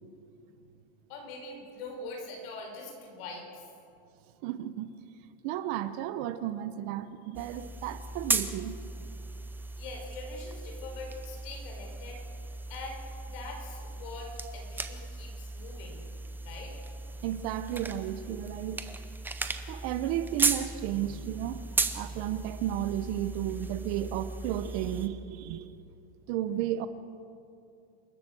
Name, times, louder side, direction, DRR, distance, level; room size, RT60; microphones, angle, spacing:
voice 1, 1.1-3.7 9.8-12.2 12.7-16.0 16.5-16.8, left 3 dB, 60° left, 1 dB, 5.3 m, -43 dB
voice 2, 4.4-5.0 5.4-8.8 17.2-18.9 19.7-21.7 21.9-25.7 26.3-26.9, right 12 dB, 45° right, 13 dB, 0.8 m, -33 dB
sound 1, 7.3-25.1, right 3 dB, 5° right, 0.6 m, -36 dB
28.0 x 12.0 x 7.7 m, 2.6 s
supercardioid pair, 170°, 33 cm